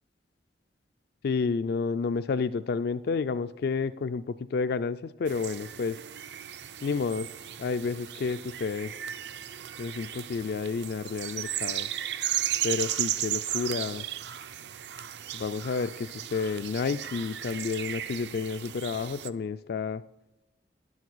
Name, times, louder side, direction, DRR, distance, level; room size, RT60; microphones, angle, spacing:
voice 1, 1.2-6.0 6.8-7.3 7.6-8.9 9.8-11.9 12.6-14.0 15.3-20.0, left 5 dB, 60° left, 12 dB, 0.3 m, -30 dB
sound 1, 5.3-19.3, right 11 dB, 70° right, 0.5 m, -35 dB
11.0 x 7.2 x 6.1 m, 0.96 s
head